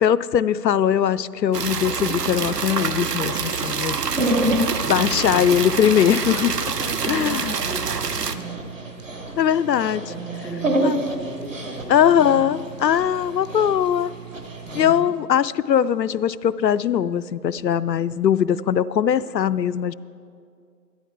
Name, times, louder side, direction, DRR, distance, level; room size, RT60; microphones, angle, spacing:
voice 1, 0.0-4.0 4.8-6.6 7.1-7.5 9.4-10.0 10.8-11.0 11.9-14.1 14.7-19.9, left 9 dB, 85° left, 16 dB, 0.5 m, -20 dB
sound 1, 1.5-8.3, right 6 dB, 70° right, 0.8 m, -26 dB
Dog, 4.0-14.9, right 1 dB, 50° right, 1.1 m, -29 dB
voice 2, 4.8-5.6 6.8-8.8 10.1-12.5 14.7-15.2, right 1 dB, 85° right, 0 dB, 2.7 m, -36 dB
12.0 x 11.5 x 4.6 m, 2.3 s
figure-of-eight pair, 175°, 49 cm